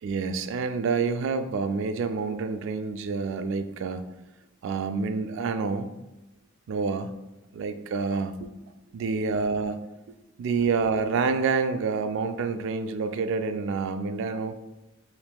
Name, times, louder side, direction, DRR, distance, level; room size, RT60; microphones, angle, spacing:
voice 1, 0.0-4.1 4.6-5.9 6.7-7.1 7.5-8.5 8.9-9.8 10.4-14.5, right 4 dB, 65° right, 9 dB, 0.3 m, -28 dB
4.4 x 3.1 x 2.3 m, 1.0 s
head